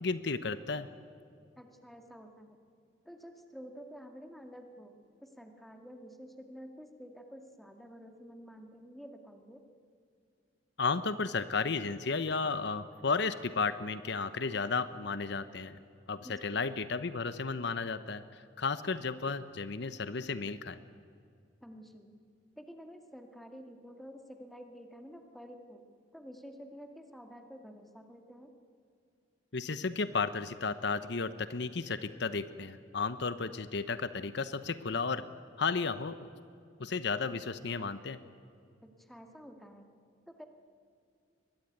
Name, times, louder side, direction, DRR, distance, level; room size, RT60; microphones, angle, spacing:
voice 1, 0.0-0.9 10.8-15.8 16.1-20.8 29.5-35.2 35.6-36.3 36.8-38.2, left 4 dB, 70° left, 13 dB, 0.9 m, -33 dB
voice 2, 1.6-2.6 3.1-9.6 16.2-16.6 21.6-22.1 22.6-25.9 26.1-28.5 38.8-39.9 40.3-40.5, equal, ahead, 5 dB, 2.1 m, -50 dB
23.5 x 21.0 x 9.3 m, 2.4 s
head